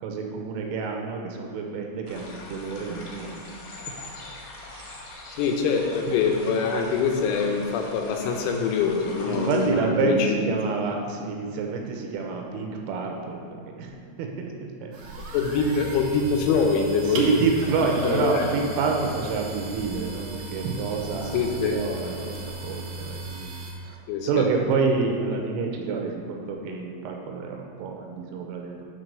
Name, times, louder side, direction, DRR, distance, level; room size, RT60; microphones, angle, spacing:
voice 1, 0.0-3.4 4.7-4.9 6.1-6.2 9.3-14.9 15.3-15.4 17.0-23.5 23.8-28.8, right 4 dB, 85° right, 1 dB, 3.4 m, -28 dB
Summer forest brook, 2.1-9.7, left 2 dB, 65° left, 2.1 m, -42 dB
voice 2, 5.4-10.6 15.3-17.3 18.0-18.5 21.3-21.8 24.1-24.5, left 5 dB, 80° left, 2 dB, 2.9 m, -24 dB
sound 1, 14.9-23.7, right 2 dB, 65° right, 2.4 m, -37 dB
10.0 x 4.0 x 6.7 m, 2.2 s
omnidirectional pair, 5.8 m